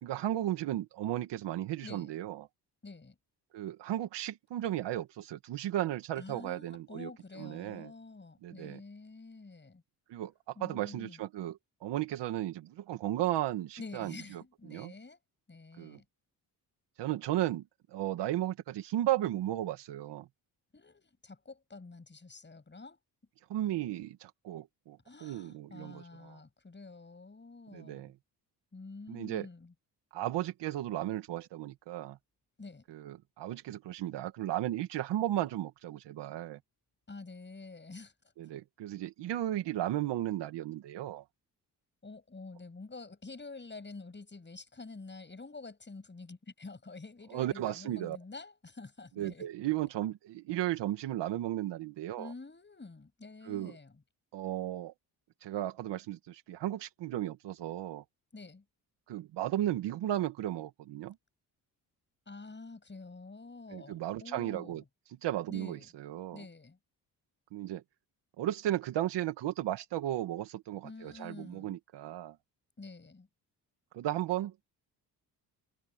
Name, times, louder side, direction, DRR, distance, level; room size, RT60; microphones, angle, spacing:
voice 1, 0.0-2.5 3.5-7.1 7.4-7.9 8.4-8.8 10.1-10.3 10.6-14.4 14.7-14.9 15.8-16.0 17.0-17.6 17.9-20.3 23.5-26.4 27.7-28.1 29.1-29.5 30.1-32.2 32.9-36.6 38.4-41.2 47.3-48.2 49.2-52.3 53.5-53.8 54.3-54.9 55.4-58.0 59.1-61.2 63.7-64.8 65.2-66.4 67.5-67.8 68.4-72.4 73.9-74.5, right 13 dB, 85° right, 2.0 m, -35 dB
voice 2, 1.8-2.1 2.8-3.2 6.1-9.8 10.6-11.2 13.8-15.2 15.5-16.0 20.7-23.0 25.0-28.1 28.7-29.7 32.6-32.8 37.1-38.1 42.0-49.5 52.2-54.0 58.3-58.6 62.3-64.8 65.5-65.9 66.3-66.8 70.8-71.8 72.8-73.3, left 3 dB, 25° left, 7.8 m, -48 dB
cardioid pair, 75°, 41 cm